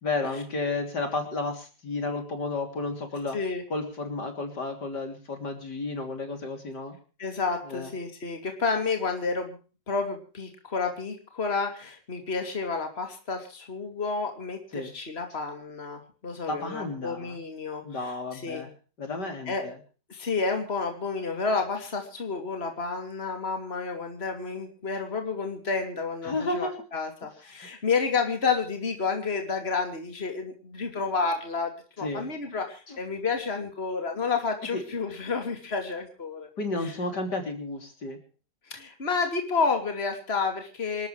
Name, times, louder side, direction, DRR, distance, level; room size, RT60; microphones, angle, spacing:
voice 1, 0.0-3.4 3.7-7.0 7.6-7.9 14.7-14.9 16.5-17.3 17.8-18.7 19.0-19.8 26.2-26.8 32.0-32.3 32.9-33.0 34.7-34.8 36.6-38.2, left 2 dB, 65° left, 5 dB, 3.9 m, -32 dB
voice 2, 7.2-9.6 9.9-18.6 19.5-19.6 20.1-36.5 36.8-36.9 38.7-41.1, left 4 dB, 35° left, 4 dB, 3.1 m, -30 dB
27.0 x 13.0 x 3.3 m, 0.37 s
omnidirectional pair, 1.9 m